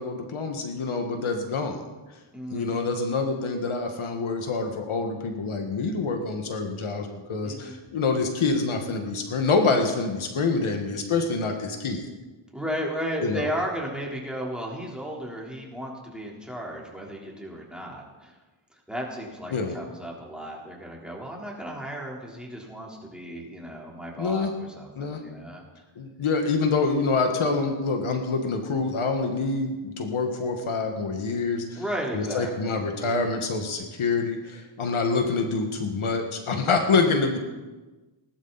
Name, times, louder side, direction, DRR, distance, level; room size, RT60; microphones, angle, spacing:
voice 1, 0.0-1.8 2.5-12.1 13.2-13.5 19.5-19.8 24.2-24.5 25.0-25.2 26.0-31.8 32.1-37.4, left 4 dB, 75° left, 4 dB, 1.8 m, -26 dB
voice 2, 2.3-2.9 7.4-7.7 12.5-18.3 18.9-25.6 31.8-32.8, equal, ahead, -3 dB, 3.9 m, -34 dB
19.5 x 12.5 x 4.2 m, 1.2 s
wide cardioid pair, 90°, 49 cm